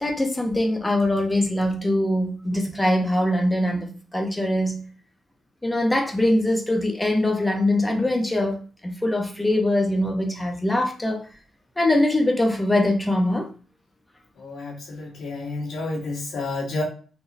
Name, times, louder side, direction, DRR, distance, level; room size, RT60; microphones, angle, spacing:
voice 1, 0.0-4.8 5.6-8.6 8.8-11.2 11.8-13.5, left 1 dB, 15° left, 0.9 m, -22 dB
voice 2, 14.4-16.8, left 2 dB, 80° left, 1.7 m, -30 dB
3.9 x 2.8 x 2.6 m
cardioid pair, 80°, 0 cm